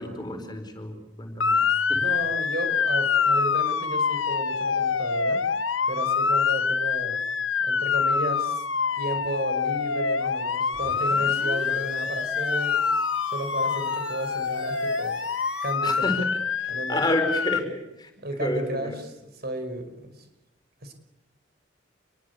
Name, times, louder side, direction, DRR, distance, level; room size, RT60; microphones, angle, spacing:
voice 1, 0.0-1.6 1.9-2.0 15.8-16.3 16.6-18.1 18.4-19.0, left 1 dB, 20° left, 6 dB, 4.5 m, -30 dB
Motor vehicle (road) / Siren, 1.4-17.6, left 5 dB, 80° left, 1.2 m, -25 dB
voice 2, 1.9-5.4 5.9-7.2 7.6-8.6 9.0-12.8 13.3-15.2 15.6-16.0 16.7-17.0 18.2-20.2 20.8-20.9, right 1 dB, 55° right, 8 dB, 5.3 m, -33 dB
sound 1, 10.7-15.7, equal, 5° right, 4.2 m, -42 dB
27.5 x 22.5 x 8.3 m, 0.91 s
head